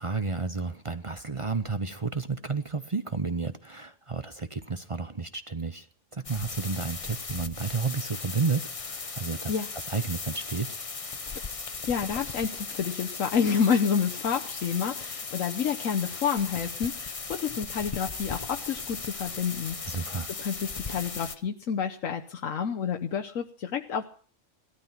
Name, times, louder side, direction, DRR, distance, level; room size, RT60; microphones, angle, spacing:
voice 1, 0.0-5.9 6.1-10.7 19.9-20.4, right 4 dB, 30° right, 11 dB, 0.7 m, -31 dB
sound 1, 6.2-21.3, left 4 dB, 30° left, 0.9 m, -37 dB
voice 2, 11.8-17.1 17.4-20.1 20.4-24.0, left 7 dB, 85° left, 3 dB, 1.4 m, -29 dB
17.0 x 12.5 x 5.8 m, 0.43 s
omnidirectional pair, 1.3 m